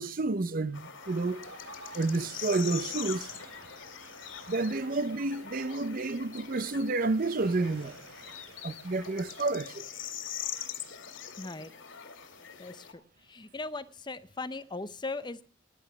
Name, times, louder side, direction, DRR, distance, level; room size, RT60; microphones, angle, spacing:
voice 1, 0.0-1.4 1.9-3.3 4.5-7.9 8.6-9.8, right 3 dB, 45° right, 0.6 m, -30 dB
sound 1, 0.7-12.9, left 9 dB, 75° left, 2.1 m, -43 dB
Ocean, 1.0-9.5, right 3 dB, 85° right, 2.8 m, -53 dB
voice 2, 11.4-11.7 12.6-15.4, left 3 dB, 25° left, 0.6 m, -39 dB
16.0 x 10.5 x 6.0 m
head